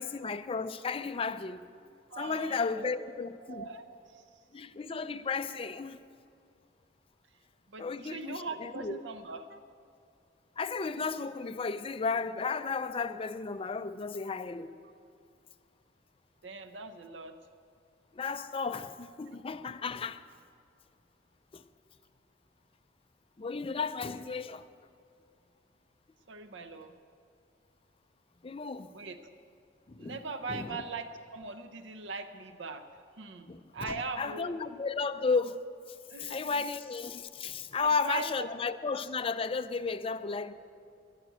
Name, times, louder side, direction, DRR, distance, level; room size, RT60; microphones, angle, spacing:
voice 1, 0.0-1.6 2.2-3.7 4.5-6.0 7.8-9.0 10.6-14.7 18.1-20.2 21.5-21.6 23.4-24.6 28.4-28.9 29.9-30.2 30.5-30.8 33.5-35.6 36.2-40.5, left 4 dB, 30° left, 0.4 m, -34 dB
voice 2, 2.1-3.1 3.4-4.3 7.7-9.6 16.4-17.4 26.3-27.0 28.9-29.2 30.0-32.9 33.2-34.6 36.1-36.5 37.7-38.3, right 3 dB, 85° right, 0.7 m, -41 dB
12.0 x 9.1 x 9.0 m
head